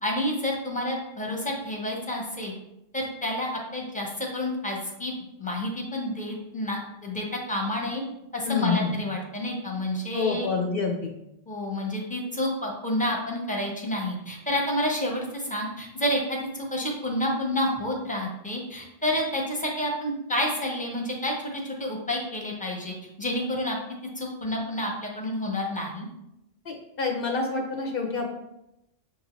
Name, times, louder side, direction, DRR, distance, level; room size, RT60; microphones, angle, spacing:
voice 1, 0.0-2.5 2.9-8.0 8.3-10.5 11.5-23.8 24.2-26.1, left 1 dB, 10° left, -1 dB, 0.7 m, -29 dB
voice 2, 8.4-8.9 10.1-11.1 26.7-28.3, left 4 dB, 65° left, 2 dB, 0.7 m, -27 dB
6.2 x 2.6 x 3.0 m, 0.86 s
omnidirectional pair, 1.1 m